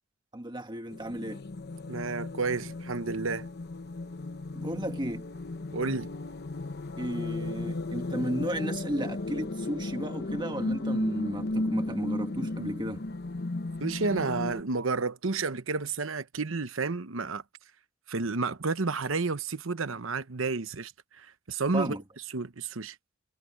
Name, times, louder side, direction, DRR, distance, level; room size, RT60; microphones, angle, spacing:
voice 1, 0.3-1.4 4.6-5.3 7.0-13.0 21.7-22.0, right 1 dB, 20° right, 1.8 m, -34 dB
sound 1, 0.9-14.6, left 2 dB, 55° left, 0.9 m, -35 dB
voice 2, 1.9-3.5 5.7-6.1 13.8-17.4 18.1-22.0 22.3-23.0, right 4 dB, 75° right, 1.0 m, -31 dB
head